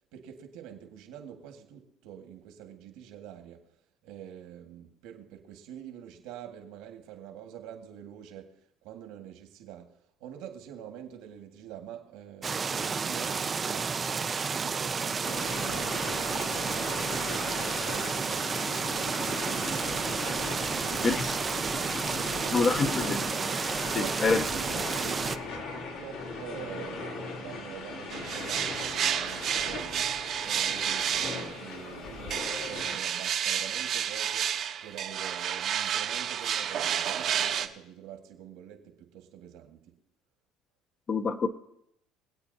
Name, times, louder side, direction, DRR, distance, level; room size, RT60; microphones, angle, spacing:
voice 1, 0.1-3.7 4.0-20.3 20.6-21.8 22.1-22.8 23.9-30.1 30.4-34.6 34.8-39.9, right 9 dB, 80° right, 1.8 m, -46 dB
sound 1, 12.4-25.4, right 5 dB, 25° right, 0.4 m, -31 dB
sound 2, 15.2-33.0, left 3 dB, 80° left, 3.1 m, -38 dB
voice 2, 22.5-23.3 23.9-24.4 41.1-41.5, left 4 dB, 35° left, 0.7 m, -26 dB
sound 3, 28.1-31.7 32.3-37.7, right 9 dB, 50° right, 0.8 m, -30 dB
25.0 x 8.6 x 2.8 m
cardioid pair, 115°, 0 cm